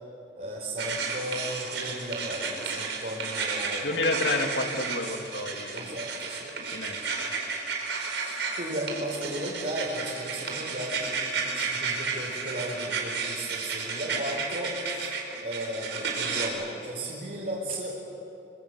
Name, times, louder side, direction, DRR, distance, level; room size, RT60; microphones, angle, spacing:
voice 1, 0.4-4.0 5.7-6.5 7.9-15.1 15.4-18.0, right 1 dB, 50° right, -5 dB, 4.7 m, -35 dB
sound 1, 0.8-16.5, right 5 dB, 90° right, 5.1 m, -32 dB
voice 2, 3.8-5.9 6.7-7.2, left 2 dB, 80° left, 4 dB, 2.5 m, -30 dB
27.5 x 25.5 x 8.1 m, 2.9 s
head